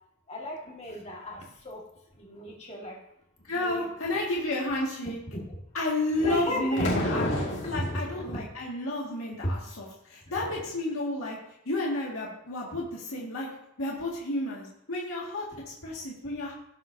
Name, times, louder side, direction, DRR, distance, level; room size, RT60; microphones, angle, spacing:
voice 1, 0.3-3.0 3.4-4.2 5.3-5.6 6.2-6.9 7.7-8.4 9.4-9.5 10.2-10.6 15.5-15.6 16.4-16.5, left 1 dB, 30° left, -1 dB, 1.8 m, -36 dB
voice 2, 3.5-5.2 5.7-7.3 7.6-9.9 10.1-11.4 11.7-13.5 13.8-15.5 15.8-16.5, left 1 dB, 85° left, -4 dB, 1.9 m, -31 dB
sound 1, 6.1-8.0, left 1 dB, 55° left, 2.0 m, -29 dB
17.5 x 7.6 x 2.7 m, 0.80 s
head